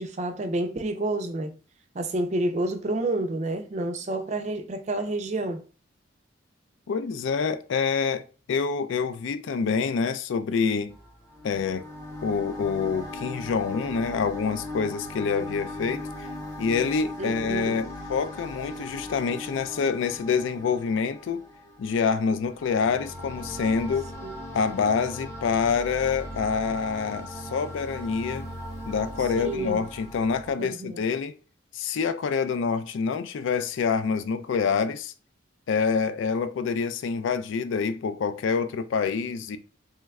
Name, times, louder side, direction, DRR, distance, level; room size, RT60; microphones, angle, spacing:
voice 1, 0.0-1.5 1.9-5.6 17.2-17.8 24.2-24.4 29.3-29.8 30.6-31.0, right 2 dB, 35° right, 0.4 m, -29 dB
voice 2, 6.9-8.2 8.5-10.9 11.4-11.8 12.2-16.3 16.6-21.4 21.8-24.1 24.5-28.5 28.9-31.4 31.7-35.1 35.7-39.6, left 5 dB, 75° left, 0.3 m, -26 dB
sound 1, 10.9-30.5, left 1 dB, 15° left, 0.6 m, -39 dB
3.1 x 2.2 x 3.5 m
head